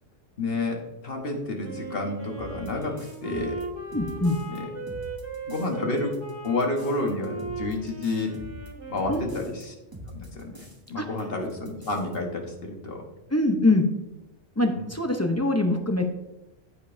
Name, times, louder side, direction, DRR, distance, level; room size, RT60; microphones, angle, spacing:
voice 1, 0.4-3.6 4.5-4.7 5.5-6.2 6.4-8.3 8.9-9.7 10.1-13.0 14.8-14.9, left 2 dB, 50° left, 2 dB, 1.4 m, -30 dB
Wind instrument woodwind instrument, 1.6-9.7, right 3 dB, 35° right, 1.6 m, -37 dB
sound 1, 2.4-4.6 4.9-5.7 6.0-9.6 9.9-10.9 11.2-11.3 11.5-12.2, equal, 20° right, 1.1 m, -43 dB
voice 2, 3.9-4.4 9.1-9.5 11.0-11.1 13.3-13.9 14.6-16.1, left 2 dB, 20° left, 4 dB, 0.5 m, -23 dB
14.5 x 5.2 x 2.6 m, 0.95 s
omnidirectional pair, 1.3 m